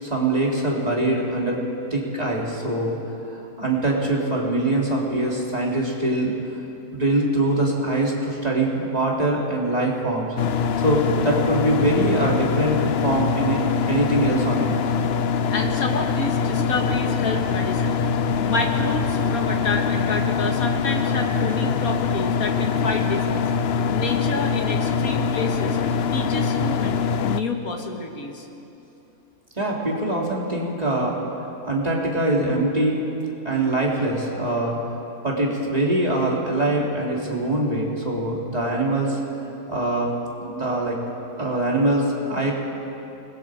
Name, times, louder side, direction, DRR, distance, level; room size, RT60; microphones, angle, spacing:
voice 1, 0.0-1.6 1.9-3.0 3.3-6.3 6.9-10.3 10.8-13.6 13.9-14.7 29.6-31.2 31.6-33.0 33.4-34.8 35.2-39.2 39.7-40.1 40.4-41.0 41.4-42.5, right 1 dB, 25° right, -3 dB, 3.2 m, -23 dB
sound 1, 10.4-27.4, left 6 dB, 55° left, 0.8 m, -23 dB
voice 2, 15.5-23.5 23.9-27.0 27.2-28.5, left 3 dB, 70° left, 3 dB, 2.1 m, -29 dB
28.5 x 21.0 x 4.9 m, 2.9 s
omnidirectional pair, 1.6 m